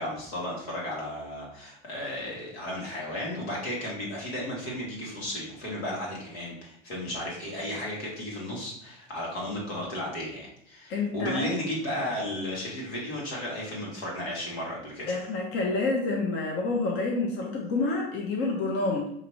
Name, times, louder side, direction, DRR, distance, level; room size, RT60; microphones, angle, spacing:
voice 1, 0.0-15.1, left 1 dB, 85° left, -4 dB, 1.6 m, -34 dB
voice 2, 10.9-11.5 15.1-19.1, left 3 dB, 50° left, -1 dB, 0.9 m, -28 dB
5.0 x 2.7 x 3.0 m, 0.72 s
hypercardioid pair, 70°, 30 cm